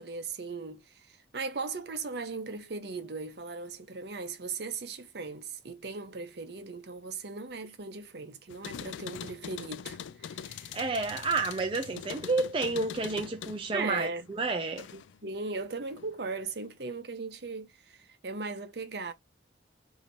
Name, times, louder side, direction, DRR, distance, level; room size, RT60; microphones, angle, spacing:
voice 1, 0.0-10.8 13.7-14.3 14.9-19.1, right 4 dB, 60° right, 0.8 m, -38 dB
sound 1, 8.5-15.2 15.6-16.4, left 8 dB, 90° left, 0.3 m, -43 dB
voice 2, 10.7-14.9, right 3 dB, 30° right, 0.5 m, -30 dB
2.8 x 2.7 x 4.2 m
head